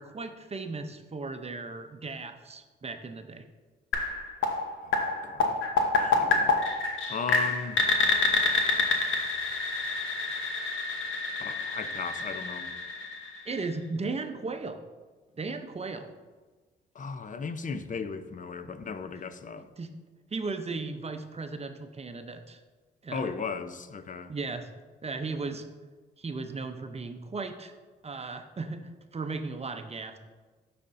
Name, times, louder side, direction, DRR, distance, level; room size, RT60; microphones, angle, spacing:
voice 1, 0.0-3.4 13.5-14.8 15.4-16.1 19.8-19.9 20.3-22.6 23.0-23.4 24.3-24.7 25.0-25.7 26.2-27.7 28.0-30.2, right 3 dB, 30° right, 0.7 m, -36 dB
sound 1, 3.9-13.7, left 3 dB, 70° left, 1.0 m, -28 dB
voice 2, 5.2-5.6 6.0-6.6 7.1-7.9 11.4-12.7 17.0-19.7 23.1-24.3, left 5 dB, 40° left, 0.6 m, -36 dB
12.0 x 4.2 x 2.6 m
supercardioid pair, 55°, 21 cm